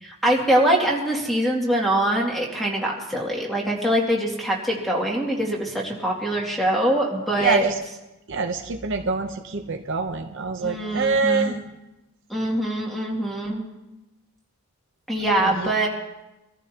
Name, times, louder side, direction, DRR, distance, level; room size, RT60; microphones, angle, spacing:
voice 1, 0.0-7.7 10.6-11.5 12.3-13.6 15.1-15.9, right 1 dB, ahead, -2 dB, 2.4 m, -23 dB
voice 2, 7.4-7.7 8.3-11.6 15.4-15.7, right 4 dB, 55° right, 4 dB, 0.8 m, -25 dB
25.0 x 14.5 x 2.9 m, 0.97 s
head